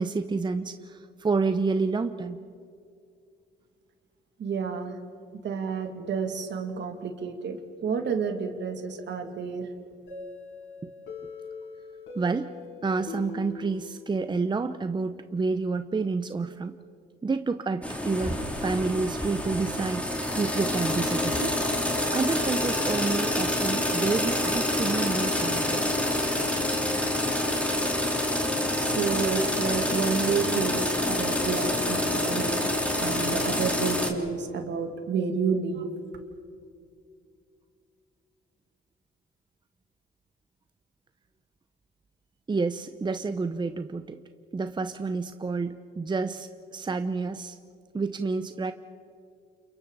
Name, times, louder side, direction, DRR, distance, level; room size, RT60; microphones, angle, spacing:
voice 1, 0.0-2.4 12.1-12.5 12.8-16.7 17.2-20.1 20.3-21.5 22.1-25.9 42.5-44.2 44.5-47.6 47.9-48.7, right 4 dB, 25° right, 9 dB, 0.7 m, -29 dB
voice 2, 4.4-5.0 5.4-7.6 7.8-9.7 28.8-32.7 33.0-35.9, right 5 dB, 65° right, 5 dB, 2.4 m, -30 dB
sound 1, 10.1-14.7, left 4 dB, 75° left, 7.4 m, -42 dB
sound 2, 17.8-34.1, left 1 dB, 5° left, 3.0 m, -27 dB
30.0 x 28.0 x 4.1 m, 2.4 s
cardioid pair, 90°, 20 cm